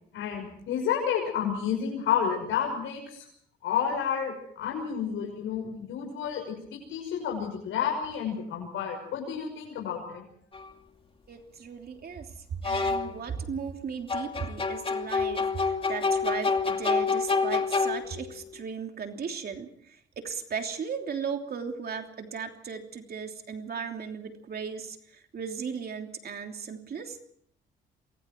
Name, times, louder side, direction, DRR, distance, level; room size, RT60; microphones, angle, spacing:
voice 1, 0.1-3.2 3.6-10.2, left 8 dB, 85° left, 0 dB, 6.1 m, -30 dB
sound 1, 10.5-10.7 12.6-13.2 14.1-18.3, left 4 dB, 25° left, 2.5 m, -27 dB
voice 2, 11.3-12.3 12.6-25.0 25.3-27.2, right 6 dB, 50° right, 4 dB, 3.1 m, -36 dB
28.0 x 23.5 x 4.6 m, 0.65 s
cardioid pair, 90°, 20 cm